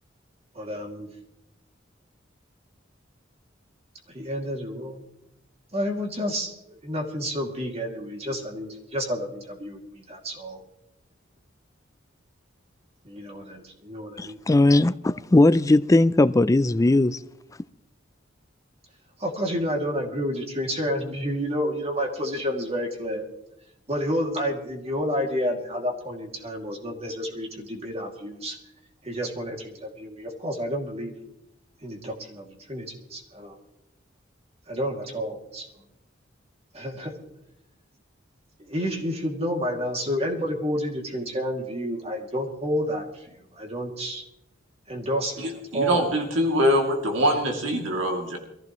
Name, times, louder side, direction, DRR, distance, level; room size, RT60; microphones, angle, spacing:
voice 1, 0.5-1.1 4.1-5.1 5.7-10.6 13.0-14.4 19.2-23.3 23.9-28.6 29.0-31.1 31.8-33.6 34.7-35.7 36.7-37.1 38.7-44.2 44.9-45.5 45.7-46.0, equal, 35° right, 2.5 m, -30 dB
voice 2, 14.2-17.2, left 2 dB, 15° left, 0.4 m, -19 dB
voice 3, 45.4-48.4, equal, 85° right, 2.6 m, -24 dB
23.0 x 15.0 x 3.1 m
head